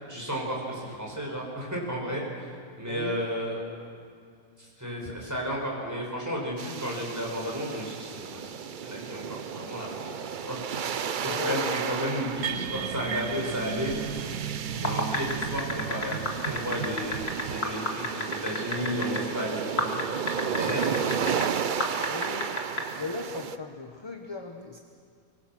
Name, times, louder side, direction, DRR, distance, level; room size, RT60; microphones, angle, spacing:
voice 1, 0.0-3.6 4.6-8.5 8.8-10.6 11.4-14.0 14.8-20.0 20.3-21.2, equal, 10° right, -3 dB, 5.9 m, -33 dB
voice 2, 2.9-3.2 11.2-11.9 22.1-24.8, left 3 dB, 20° left, 3 dB, 1.2 m, -37 dB
sound 1, 6.6-23.6, right 7 dB, 55° right, 0.6 m, -34 dB
sound 2, 12.4-17.6, right 8 dB, 70° right, 1.1 m, -35 dB
sound 3, 14.7-19.2 19.8-21.5 21.8-22.8, left 2 dB, 45° left, 2.4 m, -29 dB
24.0 x 23.5 x 6.2 m, 2.3 s
omnidirectional pair, 1.5 m